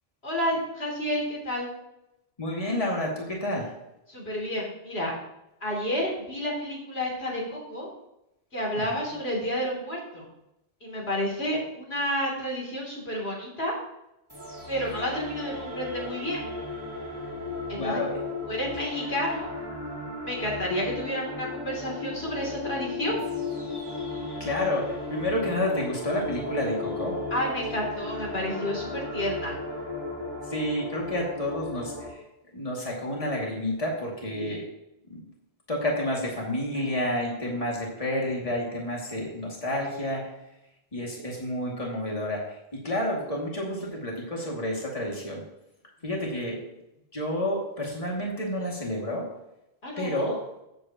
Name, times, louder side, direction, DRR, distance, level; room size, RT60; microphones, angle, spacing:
voice 1, 0.2-1.7 4.1-5.1 5.6-7.9 8.5-10.3 10.8-13.7 14.7-16.4 17.7-17.9 18.5-19.5 20.2-23.2 27.3-29.6 34.3-34.6 49.8-50.4, equal, 70° left, -2 dB, 3.2 m, -30 dB
voice 2, 2.4-3.7 8.8-8.9 17.7-18.2 24.4-27.2 30.4-32.2 32.5-34.6 35.1-35.2 35.7-40.3 40.9-45.4 46.0-46.6 47.1-49.3 50.0-50.3, left 1 dB, 35° left, -2 dB, 2.4 m, -30 dB
sound 1, 14.3-32.1, left 2 dB, 20° right, 2.4 m, -35 dB
15.0 x 8.1 x 2.9 m, 0.87 s
omnidirectional pair, 1.1 m